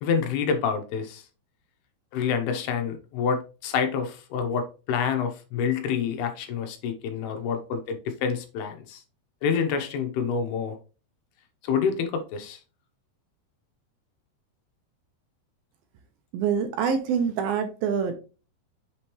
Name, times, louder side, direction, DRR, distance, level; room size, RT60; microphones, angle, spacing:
voice 1, 0.0-1.2 2.1-9.0 9.4-10.8 11.6-12.6, left 6 dB, 75° left, 2.8 m, -27 dB
voice 2, 16.3-18.1, right 7 dB, 75° right, 2.4 m, -25 dB
6.7 x 5.0 x 2.9 m
omnidirectional pair, 4.7 m